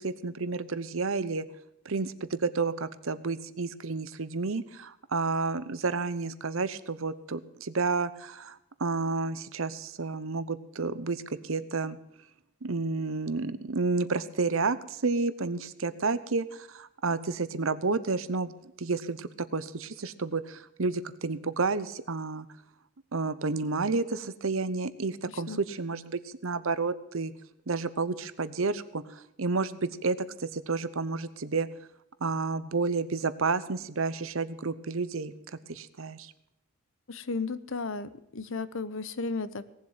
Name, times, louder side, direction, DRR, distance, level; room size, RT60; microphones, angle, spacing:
voice 1, 0.0-1.5 1.8-12.0 12.6-18.5 18.8-22.5 23.1-27.3 27.7-31.7 32.2-35.3 35.7-36.3, right 4 dB, 65° right, 15 dB, 0.8 m, -31 dB
voice 2, 37.1-39.6, left 4 dB, 60° left, 15 dB, 0.8 m, -34 dB
18.5 x 7.6 x 7.3 m, 0.82 s
head